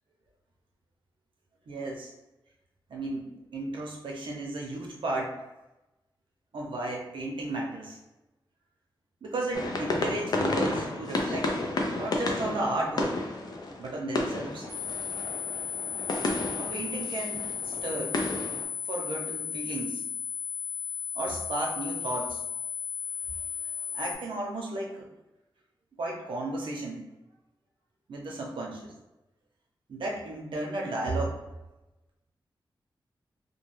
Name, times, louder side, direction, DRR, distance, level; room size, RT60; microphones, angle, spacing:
voice 1, 1.7-2.1 2.9-5.4 6.5-8.0 9.2-11.5 12.0-13.2 13.8-14.7 16.6-18.2 18.9-20.0 21.1-22.4 23.9-25.1 26.0-27.0 28.1-28.9 29.9-31.4, right 2 dB, 90° right, -1 dB, 0.6 m, -34 dB
sound 1, 9.5-18.6, left 2 dB, 55° left, 0.4 m, -32 dB
sound 2, 14.7-24.2, left 8 dB, 30° right, 0.6 m, -35 dB
2.3 x 2.2 x 3.1 m, 1.0 s
wide cardioid pair, 160°, 8 cm